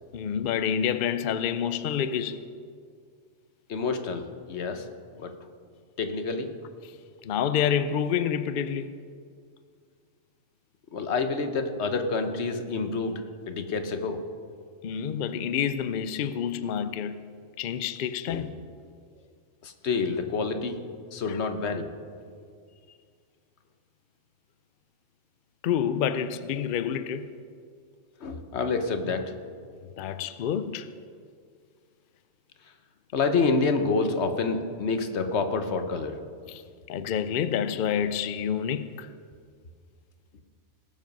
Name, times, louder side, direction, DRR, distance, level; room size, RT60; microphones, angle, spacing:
voice 1, 0.1-2.5 7.2-8.9 14.8-17.3 17.6-18.6 21.3-21.4 25.6-27.3 30.0-30.9 36.5-36.6 36.9-39.1, left 8 dB, 70° left, 0.5 m, -28 dB
voice 2, 3.7-4.9 5.2-5.3 6.0-6.5 10.9-13.2 13.5-14.2 18.3-18.4 19.6-20.8 21.1-21.9 28.2-29.3 33.1-36.2, left 4 dB, 55° left, 1.2 m, -28 dB
18.5 x 7.6 x 5.3 m
omnidirectional pair, 1.4 m